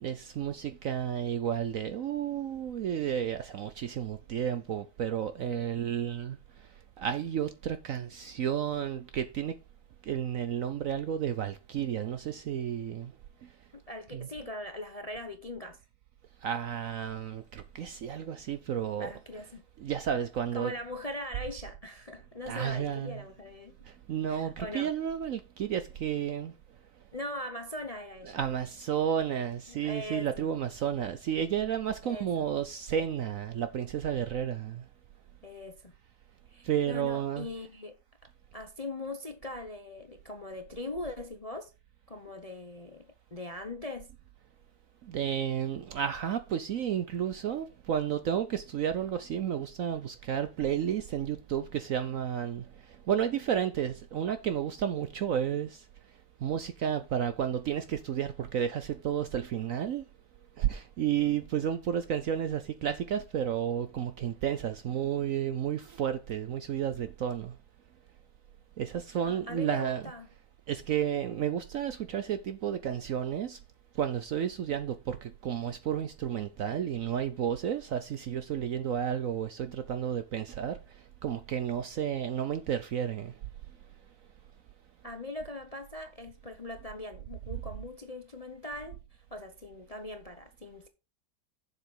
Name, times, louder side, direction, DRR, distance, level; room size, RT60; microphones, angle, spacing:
voice 1, 0.0-6.4 7.0-9.5 10.1-13.1 14.1-14.3 16.4-19.1 19.8-20.7 22.5-23.2 24.1-26.5 28.3-34.8 36.6-37.5 45.1-52.6 53.1-55.8 56.4-60.0 60.6-67.5 68.8-70.0 70.7-73.6 74.0-80.8 81.2-83.3, right 9 dB, 65° right, 0.9 m, -32 dB
voice 2, 13.7-15.8 19.0-19.6 20.5-23.7 24.3-24.9 27.1-28.4 29.7-30.5 32.0-32.5 35.4-35.9 36.5-37.9 38.5-41.7 42.1-44.1 61.2-61.3 69.2-70.3 85.0-90.9, left 2 dB, 30° left, 0.7 m, -41 dB
7.3 x 7.1 x 5.5 m
omnidirectional pair, 1.9 m